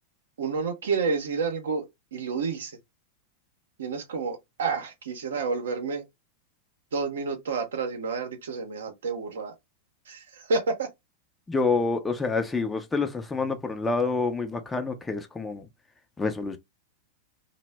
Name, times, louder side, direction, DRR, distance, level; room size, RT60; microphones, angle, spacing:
voice 1, 0.4-2.8 3.8-6.0 6.9-9.5 10.1-10.9, right 4 dB, 75° right, 0.7 m, -30 dB
voice 2, 11.5-15.7 16.2-16.6, left 4 dB, 15° left, 0.5 m, -27 dB
2.1 x 2.0 x 3.3 m
hypercardioid pair, 100°, 0 cm